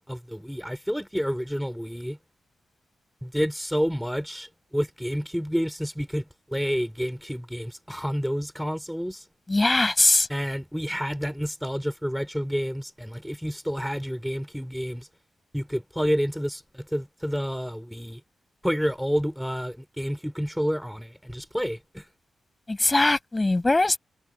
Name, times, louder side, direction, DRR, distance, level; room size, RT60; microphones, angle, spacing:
voice 1, 0.0-2.2 3.2-6.2 6.5-9.3 10.3-15.1 15.5-18.2 18.6-22.1, equal, ahead, 4.7 m, -29 dB
voice 2, 9.5-10.3 22.7-24.0, left 2 dB, 25° left, 7.1 m, -21 dB
cardioid pair, 65°, 0 cm